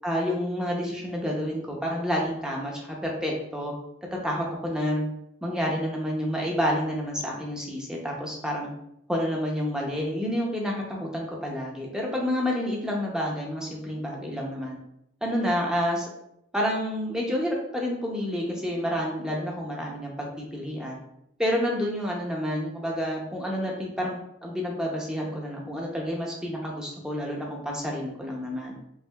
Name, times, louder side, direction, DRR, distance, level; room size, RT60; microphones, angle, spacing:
voice 1, 0.0-3.7 4.1-5.1 5.4-8.7 9.1-14.8 15.2-16.1 16.5-21.0 21.4-28.7, equal, 5° right, -2 dB, 0.7 m, -29 dB
5.7 x 2.6 x 2.3 m, 0.78 s
head